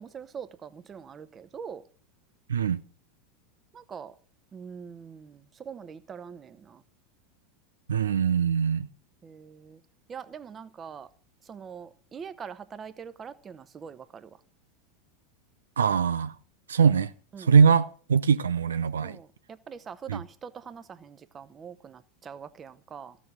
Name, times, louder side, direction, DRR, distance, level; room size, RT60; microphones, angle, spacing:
voice 1, 0.0-1.8 3.7-4.1 4.5-6.8 9.2-9.8 10.1-11.1 11.5-14.3 17.3-17.5 19.0-23.2, right 7 dB, 25° right, 1.0 m, -43 dB
voice 2, 7.9-8.9 15.8-16.3 16.7-17.1 17.4-19.2 20.1-20.2, right 6 dB, 75° right, 0.5 m, -22 dB
15.0 x 7.3 x 8.2 m
figure-of-eight pair, 85°, 0 cm